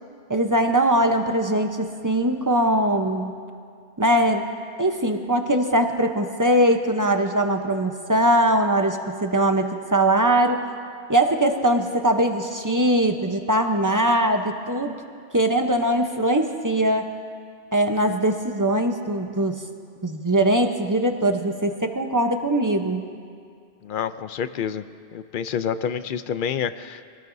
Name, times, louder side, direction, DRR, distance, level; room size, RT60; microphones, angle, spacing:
voice 1, 0.3-3.3 4.0-4.4 4.8-10.6 11.1-15.0 15.3-17.1 17.7-19.6 20.0-23.1, right 1 dB, 20° right, 5 dB, 0.8 m, -21 dB
voice 2, 23.8-24.8 25.1-27.0, left 8 dB, 60° left, 12 dB, 0.7 m, -28 dB
25.5 x 18.0 x 2.7 m, 2.3 s
omnidirectional pair, 1.1 m